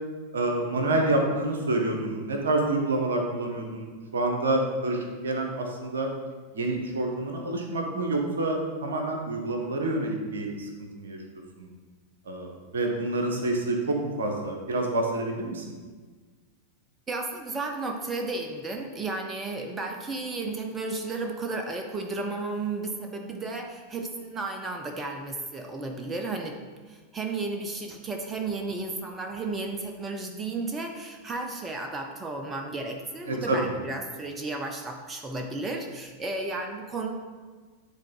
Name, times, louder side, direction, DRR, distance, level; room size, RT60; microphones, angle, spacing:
voice 1, 0.3-6.1 6.5-10.7 11.0-11.2 11.6-11.7 12.3-15.6 33.3-33.6, right 2 dB, 65° right, 2 dB, 1.0 m, -28 dB
voice 2, 17.1-26.6 26.9-37.1, right 3 dB, 20° right, 3 dB, 0.6 m, -33 dB
9.7 x 3.8 x 3.7 m, 1.4 s
figure-of-eight pair, 90°, 0 cm